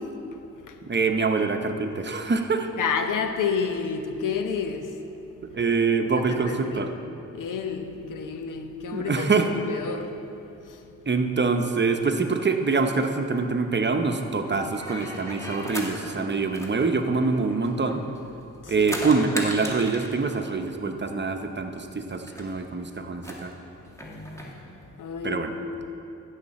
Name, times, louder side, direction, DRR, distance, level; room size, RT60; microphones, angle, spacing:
voice 1, 0.0-0.8 2.8-5.0 5.4-5.5 6.2-6.9 7.3-9.3 9.6-10.2 10.6-10.9 18.6-19.0 23.9-25.9, left 6 dB, 80° left, 6 dB, 0.8 m, -31 dB
voice 2, 0.8-2.7 5.5-6.9 8.9-9.5 11.1-18.0 18.7-23.5 25.2-25.5, right 4 dB, 35° right, 5 dB, 0.8 m, -25 dB
sound 1, 14.7-16.0 16.5-18.2 18.5-20.2 21.3-21.4 21.6-21.7 22.1-22.5 23.1-24.5, equal, 10° left, 1.9 m, -37 dB
15.0 x 6.7 x 4.2 m, 2.8 s
cardioid pair, 60°, 31 cm